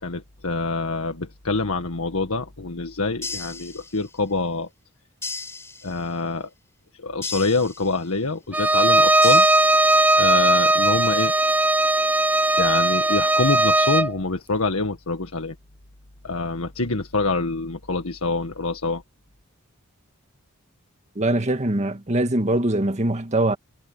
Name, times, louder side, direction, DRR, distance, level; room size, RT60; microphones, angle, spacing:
voice 1, 0.0-4.7 5.8-6.5 7.0-9.4 10.2-11.3 12.6-15.5 16.2-19.0, left 3 dB, 85° left, 1.8 m, -26 dB
sound 1, 3.2-4.3 5.2-6.3 7.2-8.3 9.2-10.3, left 4 dB, 15° left, 5.0 m, -36 dB
Bowed string instrument, 8.5-14.1, right 2 dB, 10° right, 0.4 m, -18 dB
voice 2, 21.1-23.6, right 1 dB, 35° right, 1.8 m, -22 dB
head